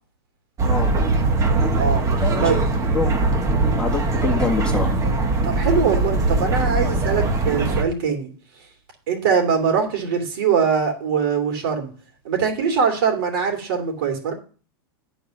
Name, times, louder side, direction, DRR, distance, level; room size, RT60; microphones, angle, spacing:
voice 1, 0.6-1.0 2.2-2.5 2.8-3.2 3.8-4.9, left 4 dB, 5° left, 0 dB, 1.7 m, -25 dB
sound 1, 0.6-7.8, right 2 dB, 25° right, 1.4 m, -21 dB
voice 2, 5.4-8.3 9.1-11.9 12.2-14.3, right 6 dB, 70° right, 4 dB, 3.0 m, -22 dB
11.0 x 4.7 x 5.1 m, 0.38 s
supercardioid pair, 130°, 13 cm